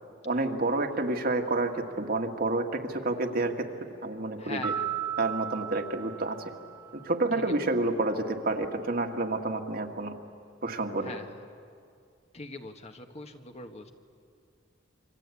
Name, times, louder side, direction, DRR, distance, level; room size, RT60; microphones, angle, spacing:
voice 1, 0.2-3.7 4.0-4.7 5.2-6.4 7.0-10.1 10.6-11.2, right 2 dB, 50° right, 4 dB, 1.8 m, -29 dB
voice 2, 4.4-4.9 11.0-11.3 12.3-13.9, left 3 dB, 35° left, 5 dB, 1.4 m, -41 dB
sound 1, 4.6-7.1, right 9 dB, 15° right, 0.8 m, -35 dB
27.5 x 24.5 x 8.4 m, 2.4 s
head